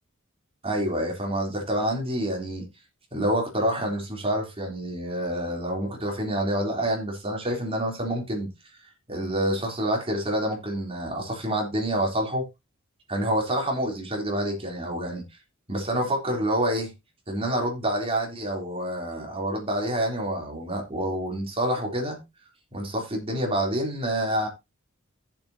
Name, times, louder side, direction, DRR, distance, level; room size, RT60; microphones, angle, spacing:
voice 1, 0.6-2.7 3.1-8.5 9.1-12.5 13.1-15.2 15.7-16.9 17.3-22.2 22.7-24.5, right 1 dB, 30° right, 3.5 m, -27 dB
14.0 x 7.3 x 2.8 m
head